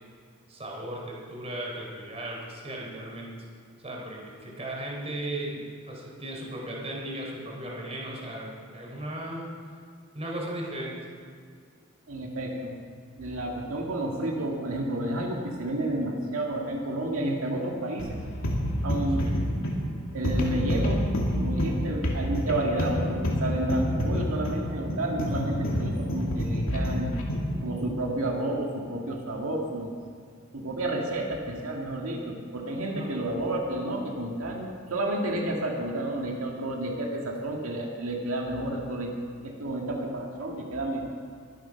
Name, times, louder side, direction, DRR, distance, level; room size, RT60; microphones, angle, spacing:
voice 1, 0.5-3.5 3.8-9.5 10.1-11.0 19.2-19.4 32.9-33.1, right 1 dB, 30° right, -2 dB, 3.6 m, -36 dB
voice 2, 12.1-12.7 13.2-18.2 18.8-19.3 20.1-21.0 21.4-27.1 27.6-29.9 30.5-39.1 39.4-41.1, right 1 dB, 90° right, -1 dB, 1.9 m, -31 dB
sound 1, 18.0-27.6, equal, 75° left, 2.5 m, -28 dB
23.0 x 8.2 x 5.7 m, 2.1 s
head